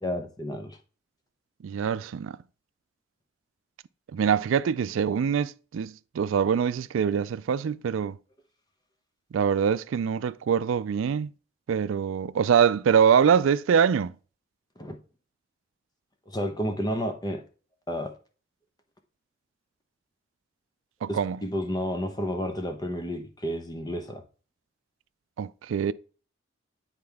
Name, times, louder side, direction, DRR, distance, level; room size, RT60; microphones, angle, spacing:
voice 1, 0.0-0.8 14.8-15.0 16.3-17.4 17.9-18.1 21.1-24.2, equal, 20° left, 0.9 m, -31 dB
voice 2, 1.6-2.3 4.1-8.2 9.3-11.3 11.7-14.1 21.0-21.4 25.4-25.9, right 7 dB, 80° right, 0.3 m, -24 dB
9.7 x 4.3 x 3.5 m
head